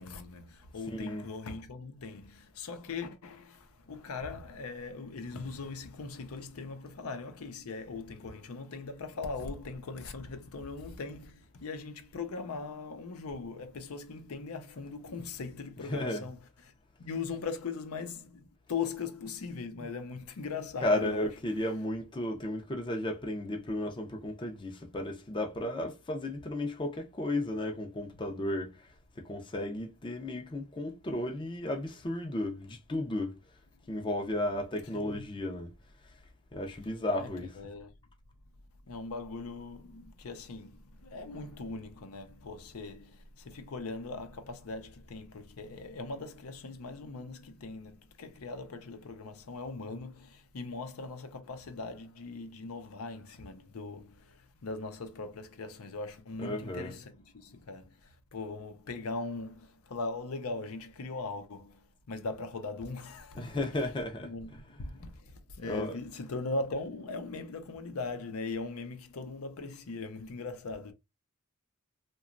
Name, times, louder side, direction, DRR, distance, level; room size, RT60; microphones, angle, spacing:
voice 1, 0.0-16.7 17.0-21.3 34.9-35.2 37.2-37.9 38.9-63.8 64.2-70.9, left 3 dB, 85° left, 0.6 m, -40 dB
voice 2, 0.9-1.3 15.9-16.2 20.8-28.9 29.2-33.4 33.9-35.7 36.5-37.5 56.4-56.9 63.4-64.3 65.7-65.9, left 1 dB, 25° left, 0.5 m, -34 dB
2.9 x 2.2 x 2.4 m
head